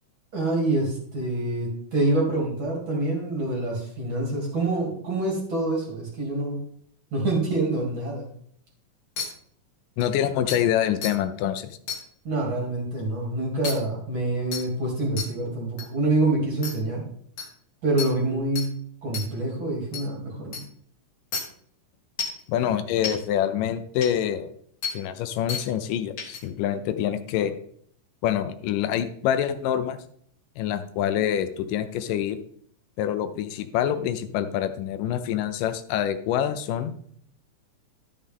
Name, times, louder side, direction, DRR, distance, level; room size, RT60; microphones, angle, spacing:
voice 1, 0.3-6.6 7.1-8.3 12.2-17.0 17.8-18.7 19.0-20.6, right 2 dB, 40° right, -3 dB, 3.4 m, -26 dB
sound 1, 9.2-9.3 10.0-10.1 10.5-10.6 11.0-11.1 11.9-12.0 13.6-13.7 14.5-14.6 15.2-15.3 15.8-15.9 16.6-16.7 17.4-17.5 18.0-18.1 18.6-18.7 19.1-19.3 19.9-20.0 20.5-20.6 21.3-21.4 22.2-22.4 23.0-23.1 24.0-24.1 24.8-24.9 25.5-25.6 26.2-26.4, left 5 dB, 45° left, 2.3 m, -30 dB
voice 2, 10.0-11.8 22.5-24.5 24.9-27.5 28.2-30.0 30.6-32.4 33.0-36.9, left 10 dB, 85° left, 10 dB, 2.3 m, -26 dB
12.5 x 6.5 x 3.6 m, 0.63 s
omnidirectional pair, 3.7 m